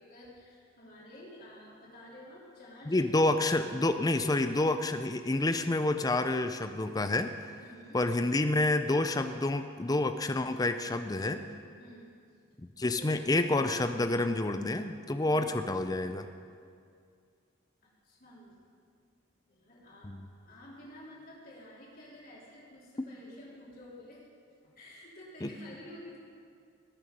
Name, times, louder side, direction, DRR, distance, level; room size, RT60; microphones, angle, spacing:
voice 1, 0.0-3.5 7.6-8.1 11.8-12.1 13.0-13.3 15.2-15.5 17.8-18.6 19.5-20.1 20.4-24.2 24.6-26.2, left 1 dB, 45° left, -6 dB, 3.5 m, -51 dB
voice 2, 2.9-7.6 7.9-11.4 12.6-16.3 20.0-20.3 25.4-25.5, left 2 dB, 20° left, 9 dB, 0.5 m, -29 dB
19.0 x 6.9 x 5.3 m, 2.2 s
head